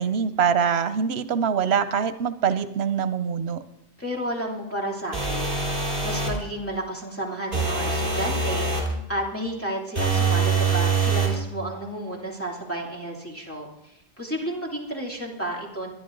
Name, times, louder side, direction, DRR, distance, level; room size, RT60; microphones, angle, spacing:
voice 1, 0.0-3.6, right 7 dB, 85° right, 12 dB, 1.0 m, -24 dB
voice 2, 4.0-5.6 6.0-8.7 9.1-15.9, right 1 dB, 15° left, -3 dB, 2.8 m, -31 dB
sound 1, 5.1-6.4 7.5-8.9 10.0-11.4, right 4 dB, 60° right, 3.5 m, -24 dB
24.5 x 10.5 x 3.9 m, 0.84 s
omnidirectional pair, 1.0 m